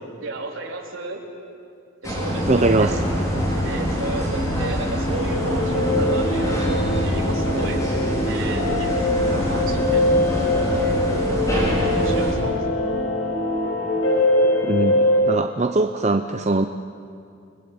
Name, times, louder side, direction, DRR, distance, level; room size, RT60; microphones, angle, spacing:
voice 1, 0.2-1.2 2.0-3.0 3.5-6.6 7.0-7.8 8.2-10.2 11.7-12.6, right 3 dB, 70° right, 0 dB, 4.0 m, -32 dB
sound 1, 2.0-12.3, equal, 15° left, 5.3 m, -24 dB
voice 2, 2.5-3.0 14.6-16.7, right 2 dB, 30° right, 7 dB, 0.6 m, -21 dB
sound 2, 5.1-15.2, left 1 dB, 75° left, 5.6 m, -23 dB
29.5 x 20.0 x 8.6 m, 2.4 s
head